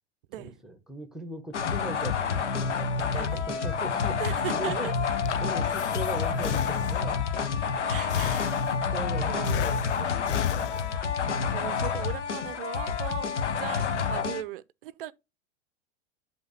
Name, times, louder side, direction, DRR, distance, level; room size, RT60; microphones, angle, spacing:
voice 1, 0.4-4.9 5.4-7.3 8.9-11.0, right 1 dB, ahead, 1.1 m, -40 dB
sound 1, 1.5-14.4, left 6 dB, 80° left, 0.8 m, -29 dB
voice 2, 3.1-3.5 4.2-5.0 7.9-8.7 9.2-9.8 11.5-15.1, right 14 dB, 50° right, 0.5 m, -38 dB
Breathing, 5.0-7.3 8.1-9.0 9.4-11.3, left 11 dB, 50° left, 0.5 m, -33 dB
sound 2, 6.9-9.6 9.9-11.5 11.7-14.1, left 4 dB, 25° left, 1.5 m, -44 dB
7.7 x 2.8 x 5.6 m
figure-of-eight pair, 95°, 35 cm